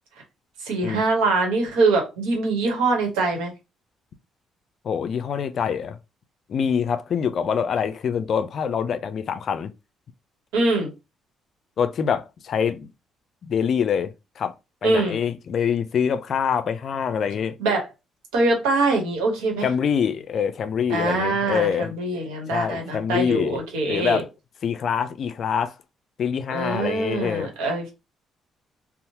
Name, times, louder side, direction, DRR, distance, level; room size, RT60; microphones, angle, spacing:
voice 1, 0.6-3.5 10.5-10.9 14.8-15.2 17.6-17.8 18.3-19.7 20.9-24.2 26.5-27.9, right 3 dB, 85° right, 0.9 m, -23 dB
voice 2, 4.8-6.0 6.5-9.7 11.8-12.9 13.4-14.5 14.8-17.6 19.6-21.9 22.5-23.6 23.9-24.3 24.6-25.7 26.2-27.5, left 7 dB, 60° left, 0.3 m, -25 dB
2.9 x 2.0 x 2.8 m
supercardioid pair, 55°, 0 cm